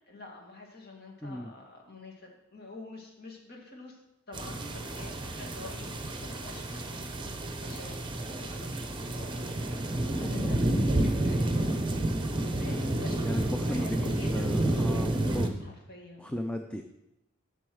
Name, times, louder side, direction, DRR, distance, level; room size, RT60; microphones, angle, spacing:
voice 1, 0.1-4.0 4.3-11.9 12.2-16.3, left 3 dB, 50° left, 0 dB, 2.2 m, -48 dB
sound 1, 4.3-15.5, right 1 dB, 25° right, 0.9 m, -30 dB
voice 2, 9.9-10.5 12.7-15.5 16.2-16.8, left 1 dB, 5° left, 5 dB, 0.4 m, -36 dB
8.1 x 7.0 x 6.3 m, 0.89 s
head